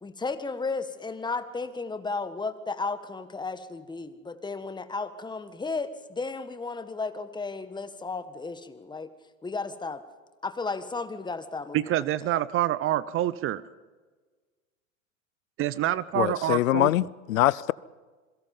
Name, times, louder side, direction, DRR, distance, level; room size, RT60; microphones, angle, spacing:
voice 1, 0.0-9.1 9.4-10.0 10.4-11.9, left 4 dB, 10° left, 1.6 m, -34 dB
voice 2, 11.7-13.6 15.6-16.9, right 13 dB, 30° right, 0.7 m, -26 dB
voice 3, 16.1-17.7, left 14 dB, 75° left, 0.7 m, -23 dB
27.5 x 22.5 x 5.6 m
hypercardioid pair, 100°, 41 cm